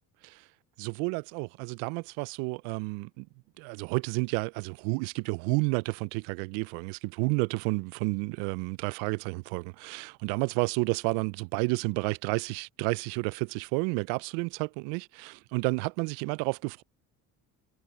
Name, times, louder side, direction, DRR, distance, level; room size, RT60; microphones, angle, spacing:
voice 1, 0.8-3.3 3.6-16.8, right 30 dB, 80° right, 0.6 m, -31 dB
hypercardioid pair, 65°, 44 cm